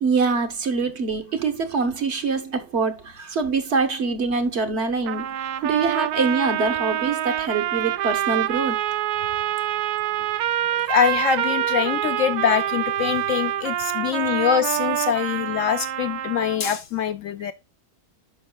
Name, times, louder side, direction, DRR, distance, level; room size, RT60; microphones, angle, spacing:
voice 1, 0.0-8.8, right 4 dB, 50° right, 1.2 m, -24 dB
sound 1, 5.1-16.7, right 12 dB, 80° right, 1.1 m, -26 dB
voice 2, 10.8-17.5, left 9 dB, 65° left, 0.8 m, -24 dB
11.0 x 5.4 x 2.2 m
omnidirectional pair, 1.6 m